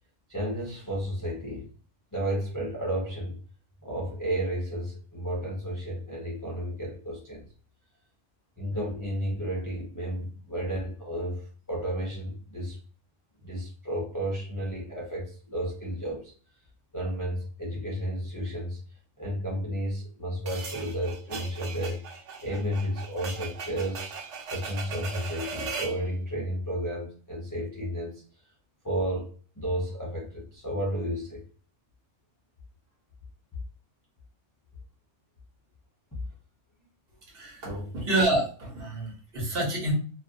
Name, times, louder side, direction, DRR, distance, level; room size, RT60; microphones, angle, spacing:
voice 1, 0.3-1.7 2.1-3.4 3.8-7.4 8.6-12.8 13.4-16.3 16.9-18.8 19.2-22.0 22.4-24.1 24.5-28.2 28.8-29.3 29.6-31.4 37.6-37.9, equal, 30° left, -5 dB, 0.3 m, -32 dB
sound 1, 20.5-26.0, right 5 dB, 75° right, 0.9 m, -38 dB
voice 2, 37.3-39.9, right 1 dB, 50° right, -2 dB, 1.1 m, -28 dB
2.4 x 2.3 x 2.5 m, 0.40 s
omnidirectional pair, 1.3 m